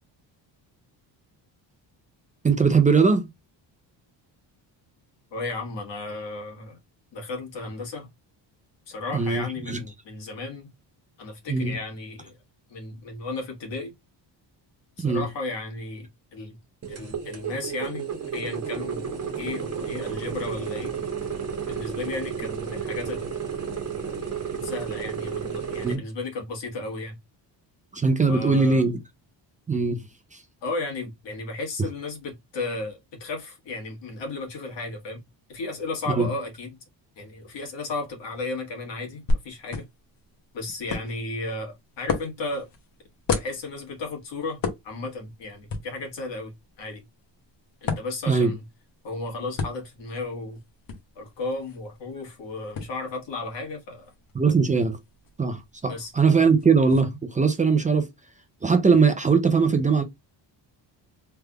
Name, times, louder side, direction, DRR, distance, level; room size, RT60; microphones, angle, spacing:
voice 1, 2.4-3.3 9.1-9.8 11.5-11.7 15.0-15.2 25.8-26.0 27.9-29.0 29.7-30.0 36.1-36.3 48.3-48.5 54.4-55.0 55.4-58.1 58.6-60.0, right 5 dB, 20° right, 0.4 m, -20 dB
voice 2, 5.3-6.8 7.1-8.1 8.9-10.7 11.2-12.4 12.7-13.9 15.0-16.6 16.9-18.1 18.3-19.1 19.4-20.9 21.6-23.3 24.5-27.2 28.3-28.8 30.6-35.2 35.5-36.8 37.2-39.8 40.5-42.7 43.3-44.6 44.8-47.0 47.8-48.6 49.0-50.6 51.1-54.1 55.9-56.1, left 2 dB, 70° left, 1.6 m, -34 dB
sound 1, 16.8-26.0, right 7 dB, 35° right, 1.1 m, -32 dB
sound 2, 39.3-57.0, left 3 dB, 50° left, 1.0 m, -36 dB
3.4 x 3.3 x 2.2 m
cardioid pair, 130°, 44 cm